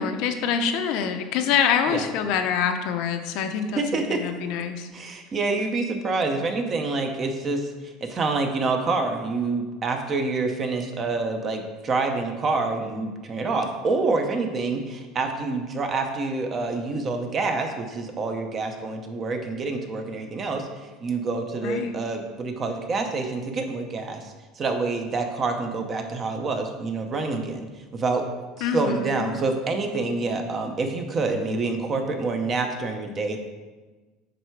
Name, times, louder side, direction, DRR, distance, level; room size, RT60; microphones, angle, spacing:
voice 1, 0.0-4.9 21.6-22.0 28.6-29.3, left 7 dB, 55° left, 6 dB, 0.6 m, -25 dB
voice 2, 3.8-4.2 4.9-27.7 27.9-28.2 28.6-33.4, right 3 dB, 25° right, 5 dB, 0.7 m, -27 dB
9.1 x 3.3 x 4.6 m, 1.3 s
cardioid pair, 155°, 0 cm